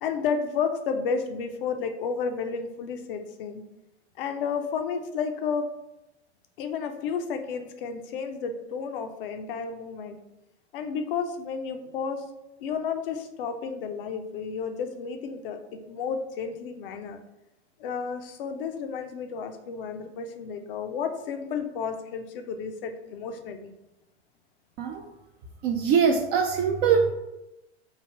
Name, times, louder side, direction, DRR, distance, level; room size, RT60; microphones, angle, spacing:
voice 1, 0.0-3.6 4.2-5.7 6.6-10.2 10.7-12.2 12.6-17.2 17.8-23.7, left 6 dB, 55° left, 6 dB, 0.6 m, -32 dB
voice 2, 25.6-27.1, right 6 dB, 30° right, 3 dB, 0.4 m, -22 dB
3.3 x 2.4 x 4.4 m, 0.94 s
figure-of-eight pair, 90°, 34 cm